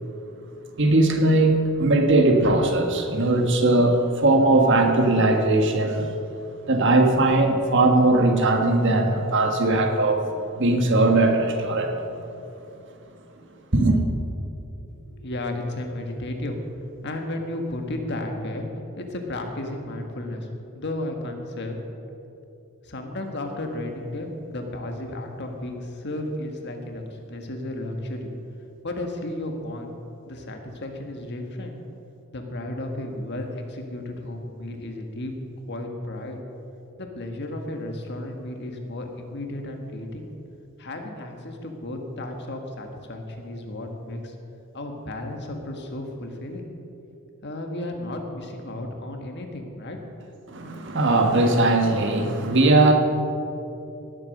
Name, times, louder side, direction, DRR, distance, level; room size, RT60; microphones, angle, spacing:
voice 1, 0.8-6.1 6.7-10.2 10.6-11.9 13.7-14.0 50.5-52.9, right 2 dB, 55° right, 4 dB, 1.5 m, -19 dB
voice 2, 15.1-16.6 17.0-18.7 19.0-20.5 20.7-21.8 22.8-28.3 28.8-29.9 30.2-31.7 32.3-35.3 35.7-36.4 37.0-40.3 40.8-44.3 44.7-46.7 47.4-50.0, left 1 dB, 50° left, 3 dB, 1.6 m, -33 dB
18.0 x 7.9 x 6.5 m, 2.8 s
head